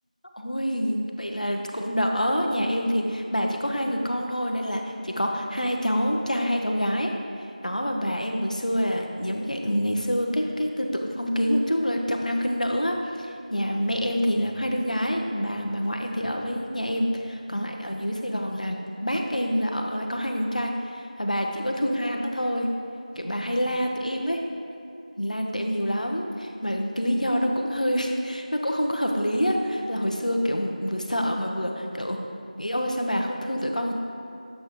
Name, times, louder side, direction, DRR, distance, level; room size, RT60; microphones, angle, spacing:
voice 1, 0.4-7.1 7.6-22.7 23.2-24.4 25.2-32.2 32.6-33.9, equal, 65° left, 2 dB, 0.7 m, -27 dB
7.4 x 4.6 x 3.5 m, 2.5 s
figure-of-eight pair, 180°, 4 cm